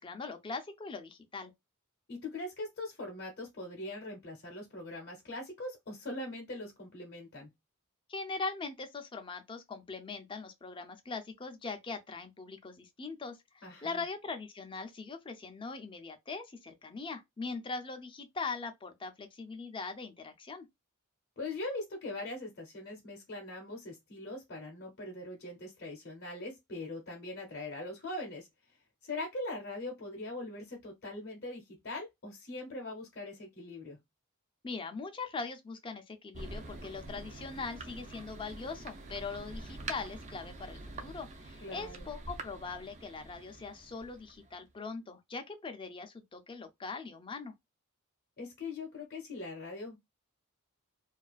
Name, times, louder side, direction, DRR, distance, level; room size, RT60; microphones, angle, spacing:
voice 1, 0.0-1.5 8.1-20.7 34.6-47.5, left 4 dB, 25° left, 0.4 m, -41 dB
voice 2, 2.1-7.5 13.6-14.0 21.4-34.0 41.6-42.1 48.4-50.0, left 2 dB, 50° left, 0.7 m, -41 dB
Thunder, 36.3-44.7, right 2 dB, 35° right, 0.5 m, -46 dB
2.4 x 2.3 x 2.3 m
head